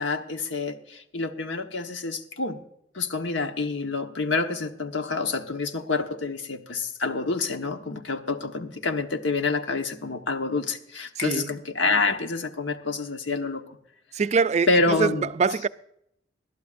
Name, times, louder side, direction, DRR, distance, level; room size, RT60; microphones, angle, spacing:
voice 1, 0.0-2.6 2.9-13.8 14.7-15.3, left 3 dB, 90° left, 1.2 m, -27 dB
voice 2, 11.2-11.5 14.1-15.7, right 5 dB, 35° right, 0.4 m, -24 dB
20.5 x 12.5 x 2.6 m
head